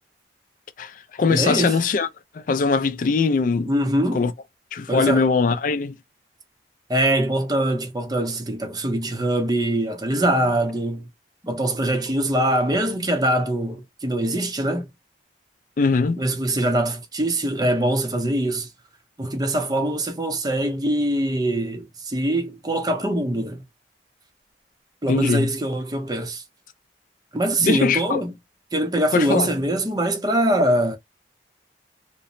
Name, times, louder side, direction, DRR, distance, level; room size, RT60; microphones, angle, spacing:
voice 1, 0.8-2.1 2.3-3.7 4.1-4.3 4.7-5.9 15.8-16.2 25.1-25.5 27.6-28.2 29.1-29.5, left 4 dB, 45° left, 0.3 m, -21 dB
voice 2, 1.3-1.7 3.7-4.2 4.9-5.4 6.9-11.1 11.4-14.9 16.2-18.7 19.2-23.6 25.0-26.4 27.3-28.3 28.7-31.0, right 1 dB, 20° right, 0.6 m, -23 dB
2.9 x 2.0 x 2.5 m
head